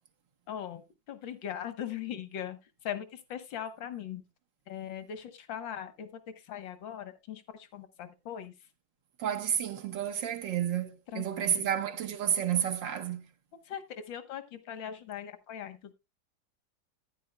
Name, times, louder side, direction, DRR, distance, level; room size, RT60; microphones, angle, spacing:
voice 1, 0.5-2.6 2.8-4.2 4.7-6.1 6.5-7.4 7.7-8.5 11.1-11.6 13.7-15.8, left 9 dB, 80° left, 1.9 m, -39 dB
voice 2, 9.2-13.3, right 9 dB, 75° right, 1.9 m, -31 dB
14.0 x 10.0 x 2.2 m
omnidirectional pair, 2.0 m